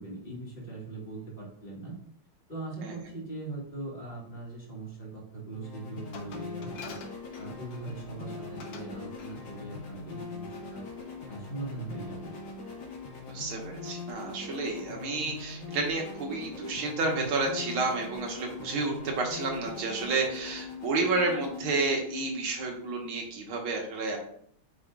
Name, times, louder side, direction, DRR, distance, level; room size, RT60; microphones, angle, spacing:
voice 1, 0.0-2.0 2.5-7.0 7.4-10.8 11.3-12.3, right 2 dB, 25° left, -3 dB, 1.9 m, -40 dB
sound 1, 5.5-23.3, left 4 dB, 75° left, 2.8 m, -42 dB
Glass, 6.1-8.0 8.6-8.9 9.2-9.4, left 5 dB, 60° left, 1.2 m, -46 dB
voice 2, 13.3-24.2, right 3 dB, 75° right, 0 dB, 2.1 m, -30 dB
8.4 x 5.0 x 2.4 m, 0.63 s
omnidirectional pair, 2.3 m